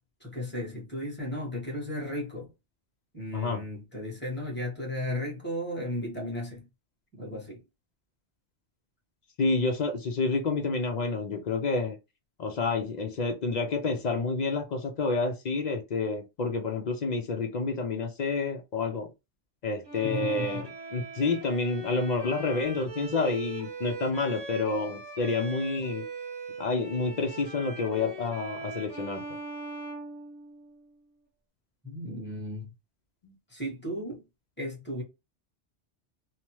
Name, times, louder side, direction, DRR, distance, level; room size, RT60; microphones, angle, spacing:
voice 1, 0.2-2.5 3.1-6.7 7.1-7.6 20.0-20.6 31.8-32.7 33.5-34.2 34.6-35.0, left 1 dB, 10° left, 1.1 m, -35 dB
voice 2, 3.3-3.6 9.4-12.0 12.4-19.1 19.6-26.0 26.6-29.2 33.2-33.3, left 3 dB, 55° left, 0.5 m, -29 dB
Bowed string instrument, 19.8-30.8, right 3 dB, 25° right, 0.8 m, -41 dB
2.9 x 2.0 x 2.9 m
omnidirectional pair, 1.2 m